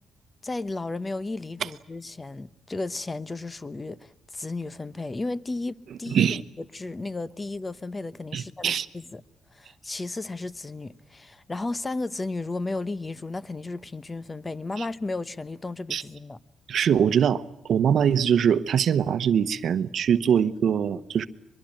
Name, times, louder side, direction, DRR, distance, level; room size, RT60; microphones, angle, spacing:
voice 1, 0.4-6.3 6.6-9.2 9.5-16.4, left 2 dB, 20° left, 1.0 m, -34 dB
voice 2, 6.1-6.4 8.3-8.9 14.8-14.9 15.9-16.0 16.7-17.4 17.7-21.3, right 8 dB, 60° right, 1.0 m, -22 dB
23.0 x 22.5 x 8.9 m
cardioid pair, 90°, 0 cm